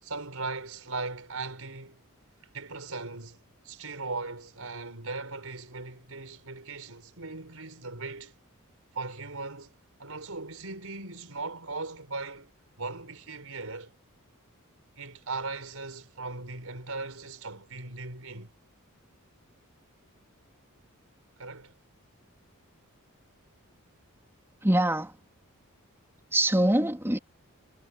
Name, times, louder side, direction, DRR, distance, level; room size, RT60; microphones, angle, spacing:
voice 1, 0.0-2.0 2.5-3.4 3.6-8.3 8.9-9.7 10.0-13.9 15.0-18.5 21.4-21.7, right 3 dB, 70° right, 5.9 m, -38 dB
voice 2, 24.6-25.2 26.3-27.2, right 1 dB, 10° right, 2.8 m, -24 dB
head